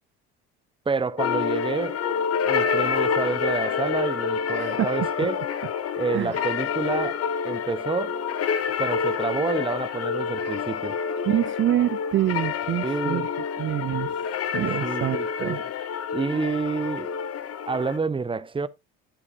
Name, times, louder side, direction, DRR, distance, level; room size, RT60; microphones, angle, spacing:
voice 1, 0.9-2.0 2.4-5.4 6.0-8.2 8.8-11.0 12.8-13.3 14.6-15.6 16.1-17.1 17.7-18.7, right 4 dB, 15° right, 0.8 m, -29 dB
sound 1, 1.2-18.0, left 7 dB, 50° left, 1.1 m, -28 dB
voice 2, 4.6-4.9 6.1-6.4 11.2-13.3 13.6-15.6, right 13 dB, 40° right, 0.4 m, -26 dB
10.5 x 7.9 x 2.6 m
supercardioid pair, 75°, 31 cm